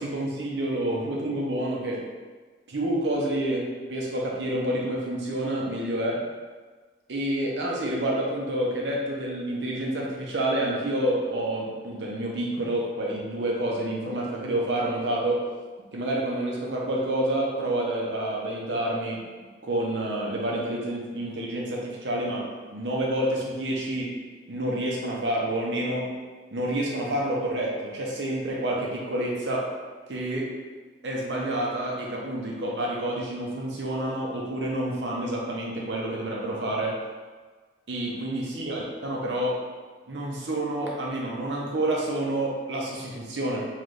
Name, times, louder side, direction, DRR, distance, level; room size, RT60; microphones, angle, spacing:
voice 1, 0.0-2.0 2.7-6.2 7.1-15.5 15.9-19.2 19.6-24.1 24.5-26.1 26.5-29.7 30.1-30.5 31.0-37.0 37.9-39.6 40.1-43.6, right 1 dB, 90° right, -3 dB, 0.8 m, -28 dB
3.8 x 3.2 x 3.2 m, 1.4 s
head